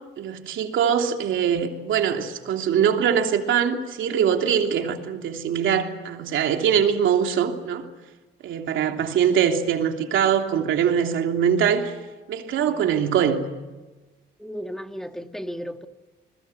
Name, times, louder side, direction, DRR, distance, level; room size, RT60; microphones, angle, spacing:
voice 1, 0.2-7.9 8.4-12.0 12.3-13.5, right 8 dB, 80° right, 3.1 m, -22 dB
voice 2, 14.4-15.9, equal, ahead, 2.1 m, -35 dB
27.0 x 21.0 x 8.1 m
cardioid pair, 90°, 20 cm